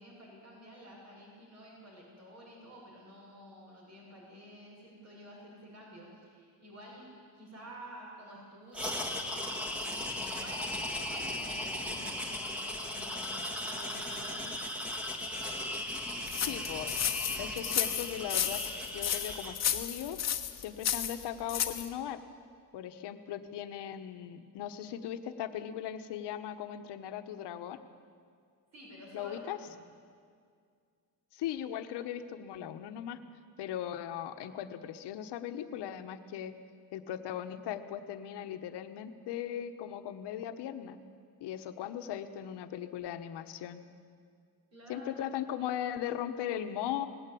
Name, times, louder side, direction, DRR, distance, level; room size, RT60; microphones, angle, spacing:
voice 1, 0.0-14.5 28.7-29.8 44.7-45.3, equal, 40° right, -3 dB, 6.7 m, -51 dB
sound 1, 8.7-19.6, left 1 dB, 5° right, 1.9 m, -37 dB
sound 2, 16.3-21.9, left 9 dB, 40° left, 1.1 m, -32 dB
voice 2, 16.5-16.9 17.4-18.6 18.9-20.2 20.6-22.2 22.7-27.8 29.1-29.6 31.3-33.2 33.6-36.5 36.9-41.0 41.4-43.8 44.9-47.1, left 10 dB, 90° left, 9 dB, 1.1 m, -38 dB
19.5 x 16.0 x 8.6 m, 2.2 s
cardioid pair, 160°, 40 cm